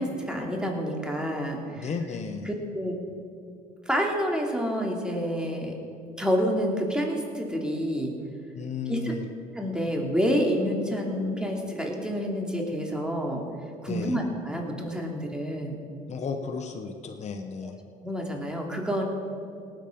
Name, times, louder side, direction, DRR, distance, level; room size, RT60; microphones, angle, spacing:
voice 1, 0.0-1.9 2.4-3.0 3.8-5.7 6.2-8.1 8.9-9.1 9.5-13.4 13.8-15.8 17.6-17.7 18.0-19.0, equal, 5° right, 0 dB, 2.8 m, -28 dB
voice 2, 1.8-2.5 8.5-9.2 13.9-14.2 16.1-17.8, left 5 dB, 40° left, 5 dB, 1.1 m, -34 dB
18.5 x 7.9 x 5.2 m, 2.5 s
supercardioid pair, 70°, 17 cm